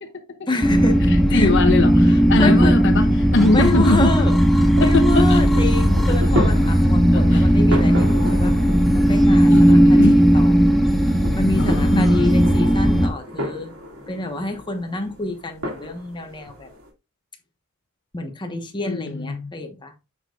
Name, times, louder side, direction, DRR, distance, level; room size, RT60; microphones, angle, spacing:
voice 1, 0.5-1.5 2.4-2.8 3.5-8.6 8.9-10.5 11.0-13.7 14.1-16.7 18.1-19.9, left 2 dB, 20° left, 1.2 m, -28 dB
sound 1, 0.6-13.1, equal, ahead, 1.1 m, -16 dB
voice 2, 1.3-4.1 4.8-5.4 7.1-7.5 9.5-10.2 11.6-12.3 18.8-19.5, left 2 dB, 60° left, 0.8 m, -22 dB
sound 2, 1.3-16.9, equal, 85° right, 2.6 m, -34 dB
7.8 x 6.1 x 2.4 m
head